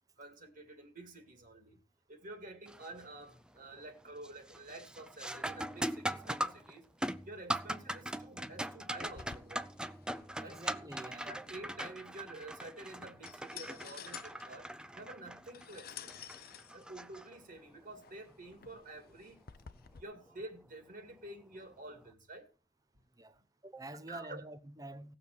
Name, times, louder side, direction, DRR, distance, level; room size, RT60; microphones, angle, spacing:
voice 1, 0.2-1.8 2.1-6.9 7.3-9.6 10.4-10.6 11.3-14.7 14.9-16.1 16.7-19.4 19.9-22.5 24.1-24.4, right 2 dB, 50° right, 2.1 m, -49 dB
sound 1, 2.7-3.1 3.5-3.9 4.2-17.8 20.3-20.4 21.2-21.4, right 1 dB, 5° right, 0.4 m, -41 dB
sound 2, 9.1-20.0, left 8 dB, 55° left, 0.7 m, -53 dB
voice 2, 10.4-11.5 23.2-25.2, right 2 dB, 20° right, 0.9 m, -47 dB
17.5 x 7.1 x 4.6 m
head